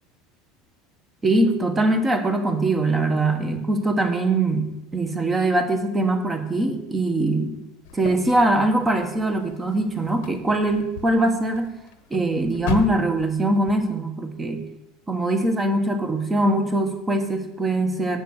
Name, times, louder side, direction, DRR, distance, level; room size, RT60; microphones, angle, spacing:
voice 1, 1.2-7.6 7.9-11.7 12.1-14.6 15.1-18.2, right 2 dB, 15° right, 6 dB, 1.3 m, -22 dB
sound 1, 7.8-13.7, left 6 dB, 90° left, 1.0 m, -36 dB
8.2 x 6.2 x 6.6 m, 0.88 s
supercardioid pair, 130°, 0 cm